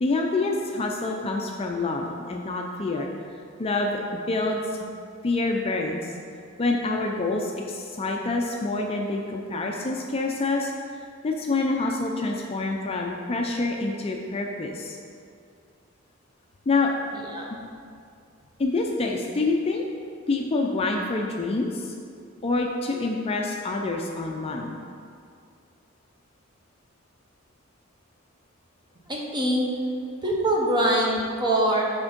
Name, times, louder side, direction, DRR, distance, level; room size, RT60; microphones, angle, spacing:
voice 1, 0.0-3.1 3.6-4.9 5.2-6.0 6.6-10.7 11.2-15.0 16.7-16.9 18.6-19.8 20.3-21.9 22.4-24.8, left 3 dB, 30° left, 1 dB, 0.4 m, -27 dB
voice 2, 29.1-29.7 30.2-31.8, right 1 dB, 20° right, -2 dB, 0.9 m, -23 dB
6.1 x 4.4 x 5.1 m, 2.4 s
head